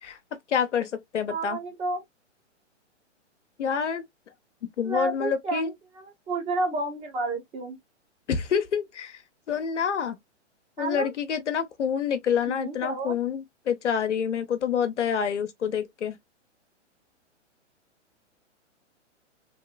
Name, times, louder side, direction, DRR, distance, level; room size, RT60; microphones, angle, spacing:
voice 1, 0.5-1.6 3.6-4.0 4.8-5.7 8.3-9.2 9.5-10.2 10.8-16.2, left 7 dB, 70° left, 1.0 m, -27 dB
voice 2, 1.3-2.0 4.8-7.8 10.8-11.1 12.4-13.2, right 3 dB, 15° right, 1.0 m, -31 dB
3.2 x 2.9 x 2.3 m
hypercardioid pair, 125°, 36 cm